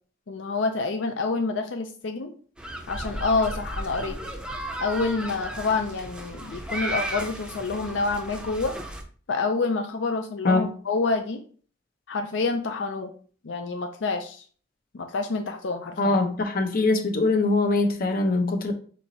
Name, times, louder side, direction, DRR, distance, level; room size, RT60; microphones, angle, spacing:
voice 1, 0.3-2.4 2.9-4.2 4.8-8.7 9.3-11.4 12.1-13.1 13.4-14.4 14.9-16.2, left 3 dB, 70° left, 0.5 m, -27 dB
sound 1, 2.6-9.0, right 1 dB, 5° right, 0.6 m, -35 dB
voice 2, 16.0-18.7, left 3 dB, 50° left, 0.9 m, -22 dB
4.5 x 4.2 x 2.8 m
head